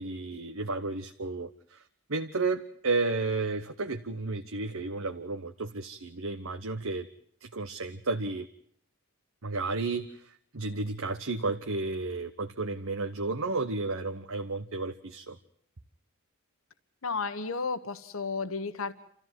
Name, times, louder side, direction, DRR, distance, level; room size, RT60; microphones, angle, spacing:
voice 1, 0.0-7.1 7.4-8.5 9.4-15.4, right 3 dB, 70° right, 6 dB, 1.1 m, -32 dB
voice 2, 17.0-18.9, left 4 dB, 70° left, 11 dB, 1.4 m, -33 dB
29.0 x 14.5 x 9.4 m, 0.63 s
head